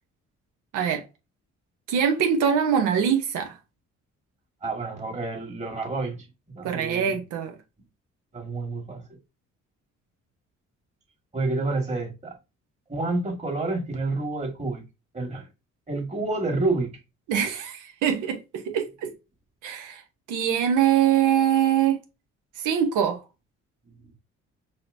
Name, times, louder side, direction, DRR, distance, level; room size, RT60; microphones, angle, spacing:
voice 1, 1.9-3.6 6.6-7.5 17.3-19.1 19.6-20.0 20.3-22.0 22.6-23.2, right 8 dB, 90° right, 0.8 m, -23 dB
voice 2, 4.6-7.1 8.3-9.0 11.3-12.4 12.9-14.8 15.1-15.5 15.9-17.0 23.9-24.0, right 3 dB, 25° right, 1.7 m, -29 dB
4.9 x 2.8 x 2.6 m
cardioid pair, 90°, 30 cm